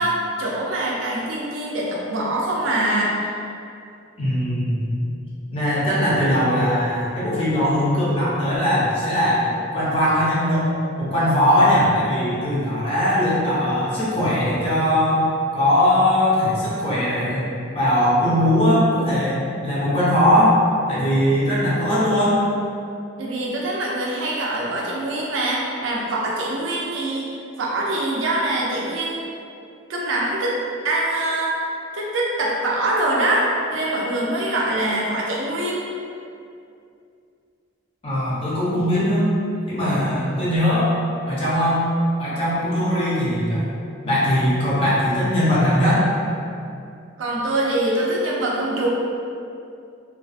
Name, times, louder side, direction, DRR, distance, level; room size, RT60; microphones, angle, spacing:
voice 1, 0.0-3.4 23.2-27.3 27.6-29.2 29.9-30.6 30.8-31.6 31.9-35.8 47.2-48.9, right 1 dB, 70° right, -4 dB, 0.4 m, -24 dB
voice 2, 4.2-5.1 5.5-10.7 11.0-15.2 15.5-17.4 17.7-20.6 20.9-22.4 38.0-39.3 39.7-40.9 41.3-41.9 42.2-43.7 44.0-46.0, left 1 dB, 30° left, -9 dB, 0.6 m, -20 dB
2.4 x 2.2 x 2.4 m, 2.5 s
head